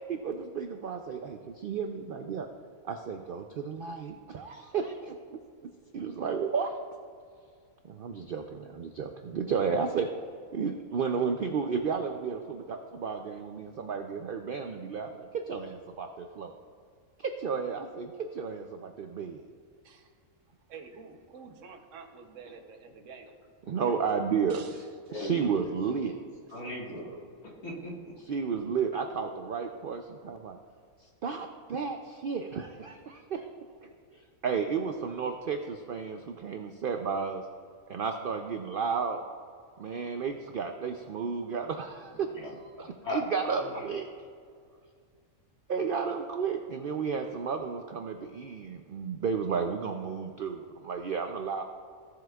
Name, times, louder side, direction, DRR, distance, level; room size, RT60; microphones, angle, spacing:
voice 1, 0.1-2.5 2.8-5.4 5.9-6.7 7.9-10.1 10.5-16.5 17.2-19.4 23.7-24.6 25.1-26.2 28.3-30.6 31.0-33.5 33.8-37.5 37.9-39.2 39.8-44.1 45.7-51.6, right 6 dB, 90° right, 5 dB, 0.4 m, -33 dB
voice 2, 20.7-23.3 24.5-25.1, right 5 dB, 60° right, 5 dB, 1.2 m, -49 dB
voice 3, 25.1-25.5 26.5-27.3 27.6-28.1 42.4-42.5 42.8-43.2 43.5-43.8, left 1 dB, 85° left, -4 dB, 2.3 m, -38 dB
16.0 x 7.6 x 2.3 m, 2.1 s
omnidirectional pair, 1.5 m